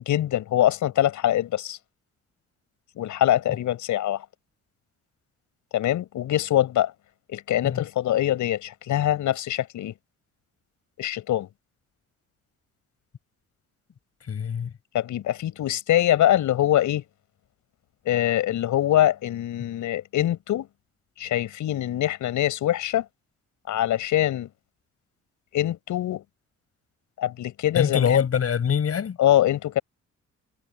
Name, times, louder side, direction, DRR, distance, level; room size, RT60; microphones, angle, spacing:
voice 1, 0.0-1.8 3.0-4.2 5.7-6.9 7.3-9.9 11.0-11.5 14.9-17.0 18.0-20.7 21.2-23.0 23.7-24.5 25.5-26.2 27.2-28.2 29.2-29.8, left 12 dB, 75° left, 6.1 m, -23 dB
voice 2, 14.3-14.7 27.7-29.2, left 7 dB, 50° left, 6.6 m, -23 dB
cardioid pair, 90°, 30 cm